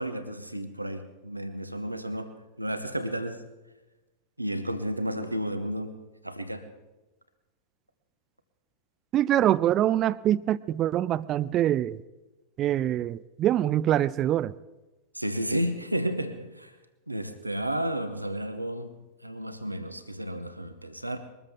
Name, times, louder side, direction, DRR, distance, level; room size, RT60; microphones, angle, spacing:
voice 1, 0.0-3.4 4.4-6.0 6.2-6.7 15.1-16.7 17.1-21.2, equal, 85° right, 9 dB, 1.0 m, -32 dB
voice 2, 9.1-12.0 12.6-14.5, right 12 dB, 30° right, 20 dB, 0.4 m, -24 dB
22.0 x 13.5 x 3.7 m, 1.1 s
figure-of-eight pair, 90°, 0 cm